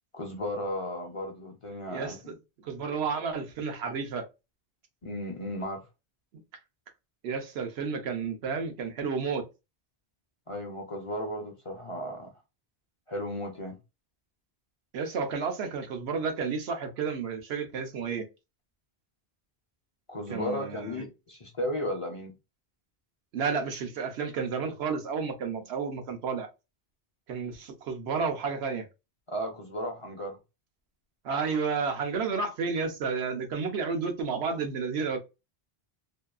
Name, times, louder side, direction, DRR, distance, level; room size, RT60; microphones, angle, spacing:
voice 1, 0.1-2.4 5.0-5.9 10.5-12.3 13.1-13.8 20.1-22.3 29.3-30.4, left 1 dB, 40° left, 0.5 m, -35 dB
voice 2, 1.9-4.2 7.2-9.4 14.9-18.2 20.3-21.1 23.3-26.5 27.3-28.8 31.2-35.2, right 5 dB, 80° right, 1.0 m, -31 dB
2.8 x 2.2 x 2.3 m
omnidirectional pair, 1.1 m